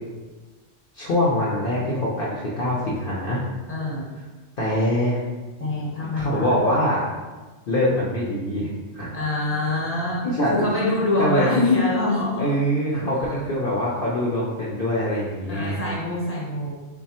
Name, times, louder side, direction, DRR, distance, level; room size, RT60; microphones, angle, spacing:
voice 1, 0.9-3.4 4.6-5.2 6.1-7.1 7.7-9.1 10.2-10.7 11.2-11.5 12.4-15.8, equal, 55° left, -6 dB, 0.7 m, -24 dB
voice 2, 3.7-4.1 5.6-6.6 9.1-12.5 13.2-13.3 15.5-16.8, left 2 dB, 15° left, -5 dB, 0.7 m, -25 dB
3.2 x 2.4 x 4.1 m, 1.3 s
omnidirectional pair, 1.3 m